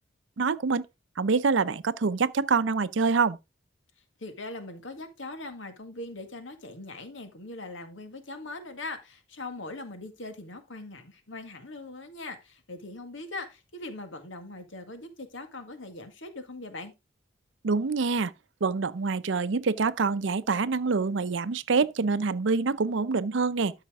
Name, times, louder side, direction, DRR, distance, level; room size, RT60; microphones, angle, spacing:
voice 1, 0.4-0.8 1.2-3.4 17.6-18.3 18.6-23.7, right 4 dB, 75° right, 0.6 m, -26 dB
voice 2, 4.2-16.9, left 2 dB, 80° left, 1.9 m, -41 dB
12.5 x 5.7 x 3.6 m
head